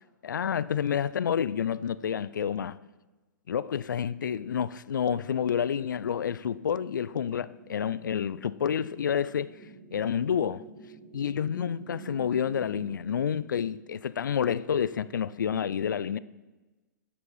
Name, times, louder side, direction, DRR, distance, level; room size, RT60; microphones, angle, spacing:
voice 1, 0.2-2.8 3.5-9.5 9.9-10.7 11.1-16.2, left 8 dB, 80° left, 0.4 m, -29 dB
sound 1, 5.8-12.9, right 4 dB, 25° right, 2.2 m, -50 dB
12.5 x 7.5 x 4.1 m
hypercardioid pair, 115°, 10 cm